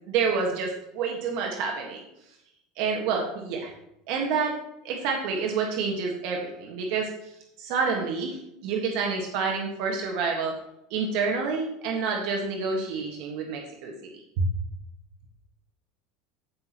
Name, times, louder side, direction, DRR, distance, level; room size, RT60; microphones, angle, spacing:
voice 1, 0.1-2.0 2.8-3.7 4.1-4.6 4.8-7.3 7.6-10.5 10.9-13.9, right 5 dB, 65° right, 1 dB, 1.5 m, -28 dB
15.0 x 6.0 x 3.0 m, 0.82 s
supercardioid pair, 140°, 0 cm